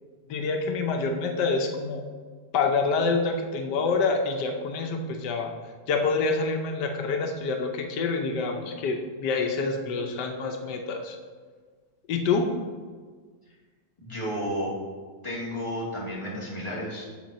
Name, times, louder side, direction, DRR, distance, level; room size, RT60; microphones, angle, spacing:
voice 1, 0.3-2.0 2.5-5.5 5.9-11.2 12.1-12.5, left 4 dB, 90° left, 3 dB, 1.4 m, -27 dB
voice 2, 14.0-14.7 15.2-17.1, equal, 15° left, -7 dB, 2.4 m, -32 dB
7.5 x 7.2 x 4.1 m, 1.5 s
omnidirectional pair, 1.8 m